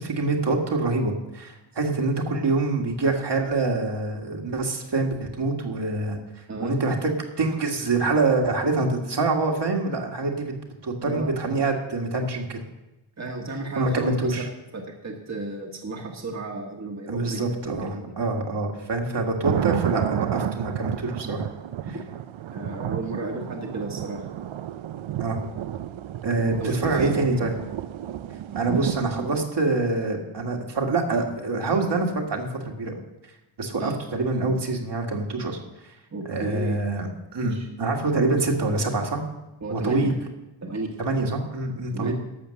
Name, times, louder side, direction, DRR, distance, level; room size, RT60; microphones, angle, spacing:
voice 1, 0.0-6.2 6.6-7.1 7.4-10.5 10.8-12.6 13.8-14.5 17.1-21.5 25.2-25.4 26.2-27.5 28.6-33.0 33.6-35.6 36.3-39.2 39.7-40.2 41.0-42.1, right 3 dB, 65° right, 1 dB, 1.9 m, -25 dB
voice 2, 13.2-14.4 14.7-17.4 17.8-18.1 21.9-22.0 22.5-24.2 26.6-27.1 33.8-34.0 36.1-36.9 37.5-37.7 39.6-40.1 40.6-40.9 41.9-42.1, right 2 dB, 35° right, 1 dB, 1.4 m, -33 dB
sound 1, 19.4-29.4, right 11 dB, 90° right, 0.6 m, -31 dB
12.0 x 7.1 x 6.5 m, 0.99 s
wide cardioid pair, 110°, 45 cm